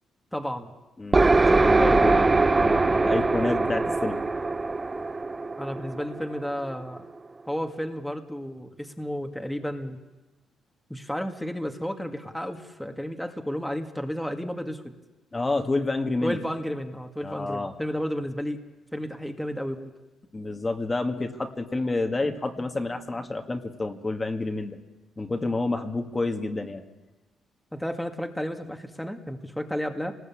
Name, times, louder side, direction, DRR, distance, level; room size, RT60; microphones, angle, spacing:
voice 1, 0.3-0.8 5.6-7.1 7.5-10.0 10.9-14.9 16.2-18.6 18.9-19.9 22.2-22.4 27.7-30.1, equal, 5° left, 4 dB, 2.0 m, -32 dB
voice 2, 1.0-4.2 15.3-16.4 17.2-17.7 20.3-24.8 25.2-26.8, left 2 dB, 20° left, 5 dB, 2.0 m, -29 dB
sound 1, 1.1-6.7, right 3 dB, 25° right, 0.9 m, -22 dB
27.5 x 19.5 x 8.7 m, 1.1 s
cardioid pair, 90°, 0 cm